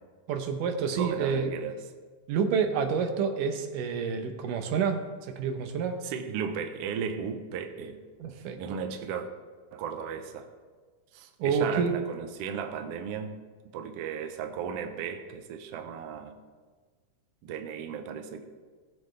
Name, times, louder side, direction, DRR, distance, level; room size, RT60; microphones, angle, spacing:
voice 1, 0.3-1.5 2.3-6.0 8.2-8.8 11.4-12.0, right 6 dB, 90° right, 6 dB, 2.5 m, -28 dB
voice 2, 0.9-1.8 6.0-8.0 8.6-9.3 9.7-10.5 11.1-13.4 13.6-16.4 17.4-18.4, right 7 dB, 70° right, 6 dB, 1.5 m, -35 dB
18.5 x 7.8 x 3.3 m, 1.5 s
omnidirectional pair, 3.7 m